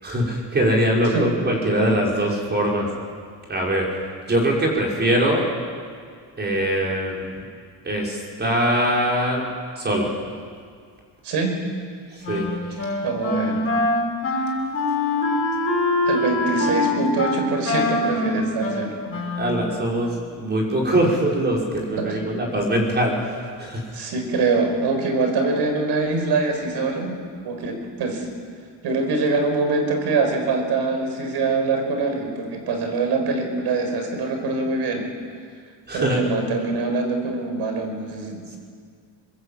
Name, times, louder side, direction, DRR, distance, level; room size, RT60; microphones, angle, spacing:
voice 1, 0.0-2.9 3.5-3.9 4.3-5.5 6.4-7.3 7.8-9.4 9.8-10.1 12.1-12.5 19.4-23.9 35.9-36.2, right 1 dB, 25° right, -2 dB, 5.8 m, -22 dB
voice 2, 11.2-11.6 13.0-13.7 16.1-19.0 22.0-22.2 23.9-28.3 28.8-35.1 35.9-38.6, right 3 dB, 65° right, 4 dB, 5.5 m, -24 dB
Wind instrument woodwind instrument, 12.2-19.7, left 2 dB, 30° left, 6.9 m, -24 dB
22.0 x 22.0 x 8.7 m, 2.1 s
cardioid pair, 145°, 43 cm